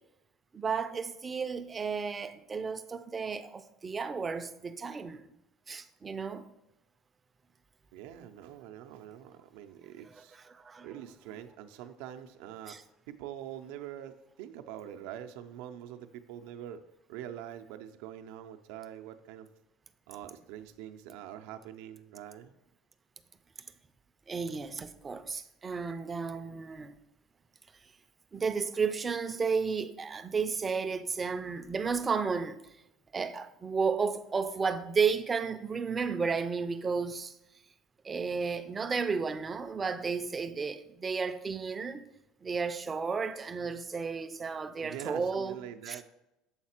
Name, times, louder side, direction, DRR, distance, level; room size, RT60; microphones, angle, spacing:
voice 1, 0.5-5.3 5.7-6.4 10.1-10.9 12.7-12.8 24.3-26.9 28.3-32.6 33.1-37.3 38.0-42.1 42.4-45.6 45.9-46.0, right 5 dB, 20° right, 0.4 m, -33 dB
voice 2, 7.9-10.4 10.8-12.8 13.1-16.8 17.1-19.5 20.1-22.5 44.8-46.0, right 11 dB, 75° right, 0.5 m, -44 dB
7.3 x 4.0 x 4.4 m
cardioid pair, 125°, 0 cm